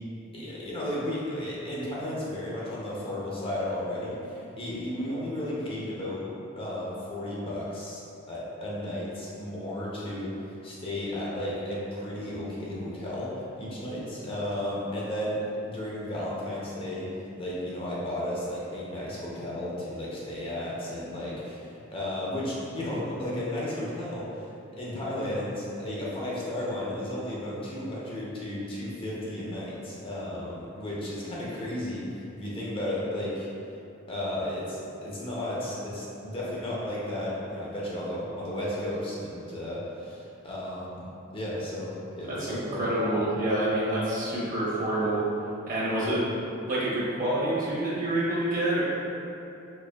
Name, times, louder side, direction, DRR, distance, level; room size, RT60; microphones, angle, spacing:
voice 1, 0.3-6.3 6.6-8.0 8.3-15.4 15.6-17.1 17.3-33.5 34.1-41.0 41.3-42.8 46.0-46.1, left 1 dB, 25° left, -6 dB, 0.5 m, -34 dB
voice 2, 42.2-45.2 45.7-46.2 46.7-48.8, right 1 dB, 40° right, -8 dB, 0.9 m, -27 dB
4.3 x 2.8 x 2.2 m, 2.8 s
head